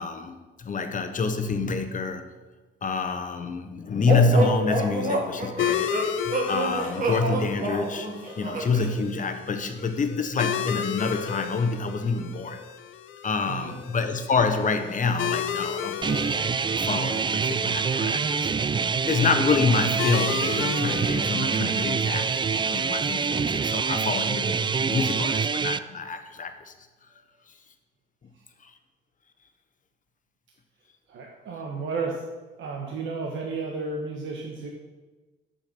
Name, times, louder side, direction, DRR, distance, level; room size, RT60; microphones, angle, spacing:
voice 1, 0.0-2.3 2.8-5.9 6.2-8.1 8.4-12.6 13.2-16.2 16.8-18.5 19.1-26.7 28.6-28.7, left 4 dB, 40° left, 8 dB, 1.1 m, -27 dB
sound 1, 4.1-8.9, right 2 dB, 45° right, 2.1 m, -27 dB
sound 2, 5.6-24.7, left 9 dB, 80° left, 0.7 m, -35 dB
sound 3, 16.0-25.8, right 5 dB, 25° right, 0.4 m, -26 dB
voice 2, 31.1-32.2 32.6-34.7, right 4 dB, 75° right, 0 dB, 1.3 m, -32 dB
8.8 x 7.0 x 6.1 m, 1.2 s
cardioid pair, 90°, 20 cm